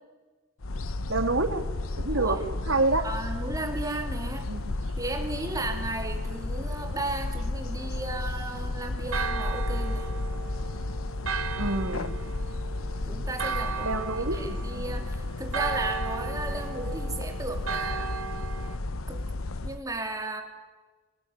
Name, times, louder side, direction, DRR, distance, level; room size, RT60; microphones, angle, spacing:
sound 1, 0.6-19.8, left 2 dB, 85° left, 1.0 m, -33 dB
voice 1, 1.1-1.6 2.0-3.1 4.5-4.6 11.6-12.1 13.8-15.0, right 2 dB, 65° right, 8 dB, 2.6 m, -28 dB
voice 2, 2.1-2.4 3.0-4.5 5.0-10.1 13.1-13.9 14.3-18.5 19.1-19.2 19.6-20.4, right 2 dB, 15° right, 4 dB, 3.2 m, -35 dB
Church bell, 9.1-18.8, right 5 dB, 90° right, 1.5 m, -36 dB
23.0 x 20.0 x 9.6 m, 1.3 s
head